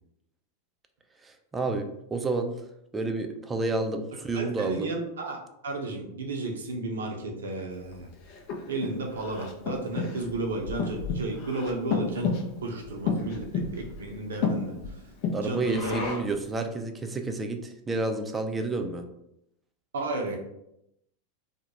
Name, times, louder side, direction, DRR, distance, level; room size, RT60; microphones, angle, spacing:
voice 1, 1.2-2.5 2.9-4.9 15.3-19.1, right 3 dB, 15° right, 6 dB, 0.4 m, -30 dB
voice 2, 4.3-5.4 5.6-8.1 8.7-15.0 15.4-15.9 19.9-20.4, right 2 dB, 80° right, 2 dB, 0.5 m, -33 dB
Breathing, 7.9-16.4, left 4 dB, 55° left, 0.5 m, -32 dB
2.3 x 2.1 x 2.9 m, 0.80 s
hypercardioid pair, 95°, 0 cm